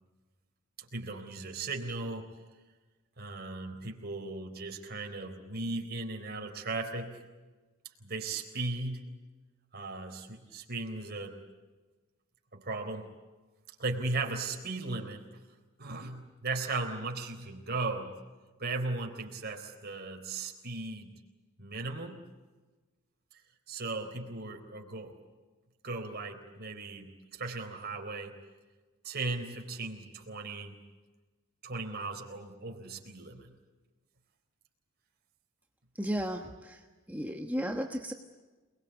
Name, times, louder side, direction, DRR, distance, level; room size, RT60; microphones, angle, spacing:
voice 1, 0.9-2.3 3.2-7.2 8.0-9.1 9.7-11.4 12.5-13.1 13.8-15.2 15.8-18.2 18.6-21.1 21.6-22.2 23.7-25.2 25.8-28.3 29.0-30.8 31.6-33.5, right 3 dB, 45° right, 3 dB, 3.8 m, -37 dB
voice 2, 35.9-38.1, equal, 5° right, 3 dB, 1.2 m, -34 dB
28.0 x 21.0 x 8.2 m, 1.3 s
head